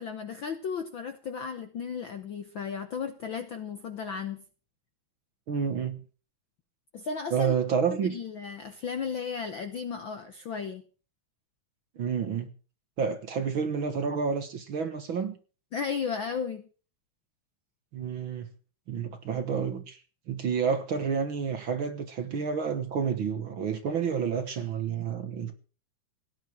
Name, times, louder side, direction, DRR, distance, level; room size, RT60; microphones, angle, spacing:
voice 1, 0.0-4.4 6.9-7.5 7.9-10.8 15.7-16.7, left 6 dB, 60° left, 1.3 m, -35 dB
voice 2, 5.5-6.0 7.3-8.2 12.0-12.5 13.0-15.4 17.9-18.5 18.9-20.0 20.3-25.5, right 6 dB, 50° right, 1.7 m, -29 dB
17.5 x 10.0 x 6.3 m
omnidirectional pair, 3.4 m